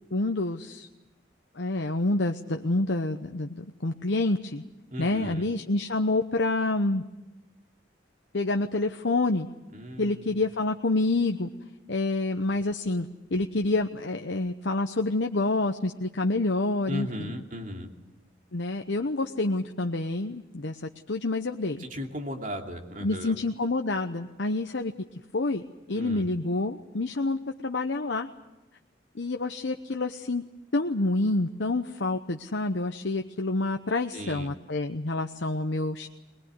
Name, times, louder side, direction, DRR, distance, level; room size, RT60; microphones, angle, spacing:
voice 1, 0.1-0.9 1.5-4.6 5.0-7.0 8.3-9.5 10.0-11.5 11.9-17.3 18.5-21.8 23.0-24.9 25.3-25.6 25.9-27.4 27.6-28.3 29.1-30.4 30.7-36.1, left 2 dB, 70° left, 5 dB, 0.9 m, -28 dB
voice 2, 4.9-5.4 9.7-10.3 16.9-17.9 21.8-23.3 25.9-26.2 34.1-34.5, equal, 45° right, 2 dB, 2.8 m, -36 dB
22.0 x 21.0 x 9.6 m, 1.0 s
head